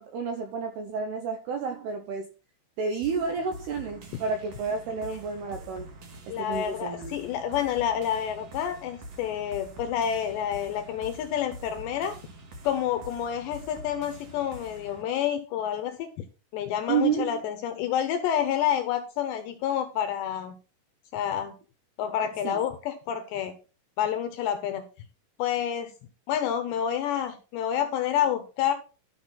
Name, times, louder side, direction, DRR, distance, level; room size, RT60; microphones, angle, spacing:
voice 1, 0.0-2.3 2.8-5.9 6.3-7.2 16.9-17.4 22.4-22.6, right 5 dB, 80° right, 6 dB, 2.3 m, -30 dB
sound 1, 3.0-15.0, right 1 dB, 55° right, 1.7 m, -46 dB
voice 2, 6.3-12.1 12.6-16.1 16.5-20.6 21.1-21.5 22.0-23.5 24.0-24.8 25.4-25.9 26.3-28.7, left 9 dB, 80° left, 9 dB, 2.6 m, -28 dB
12.5 x 6.0 x 4.0 m, 0.34 s
omnidirectional pair, 5.8 m